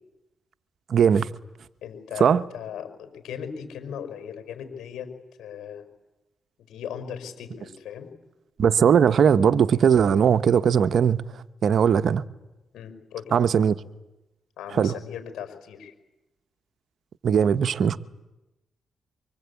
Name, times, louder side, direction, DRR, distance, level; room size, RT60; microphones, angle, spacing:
voice 1, 0.9-1.3 2.2-2.4 8.6-11.2 11.6-12.2 13.3-13.8 14.7-14.9 17.2-18.0, right 7 dB, 65° right, 1.0 m, -19 dB
voice 2, 1.8-5.1 5.4-5.9 6.7-8.1 11.9-12.0 12.7-13.3 14.6-15.9, left 8 dB, 80° left, 5.3 m, -38 dB
24.5 x 24.5 x 8.5 m
supercardioid pair, 60°, 0 cm